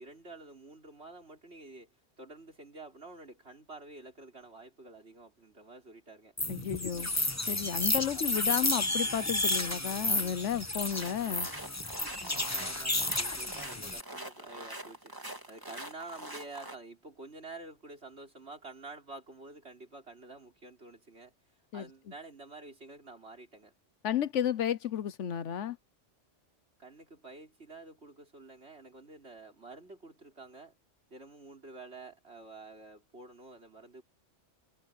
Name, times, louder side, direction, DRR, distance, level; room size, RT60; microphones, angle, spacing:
voice 1, 0.0-6.3 8.1-8.7 12.1-21.3 21.7-23.7 26.8-30.8 31.1-34.0, right 2 dB, 65° right, 5.1 m, -49 dB
sound 1, 6.4-14.0, left 2 dB, 15° left, 1.2 m, -32 dB
voice 2, 6.5-7.1 7.5-11.5 21.7-21.9 24.0-25.8, left 9 dB, 80° left, 1.2 m, -32 dB
sound 2, 10.9-16.7, right 1 dB, 15° right, 2.6 m, -44 dB
omnidirectional pair, 1.2 m